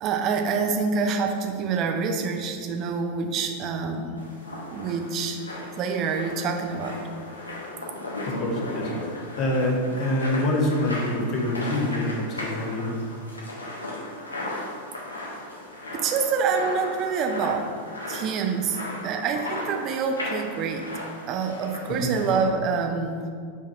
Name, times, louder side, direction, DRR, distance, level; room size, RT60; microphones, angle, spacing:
voice 1, 0.0-4.1 4.7-5.4 5.8-7.0 15.9-17.6 18.1-20.9 21.3-23.3, right 5 dB, 35° right, 4 dB, 0.6 m, -26 dB
sound 1, 4.2-22.4, left 1 dB, 80° left, 1.1 m, -36 dB
voice 2, 8.3-13.0 22.0-22.1, left 1 dB, 35° left, -1 dB, 1.2 m, -26 dB
5.1 x 4.1 x 5.4 m, 2.1 s
figure-of-eight pair, 90°, 0 cm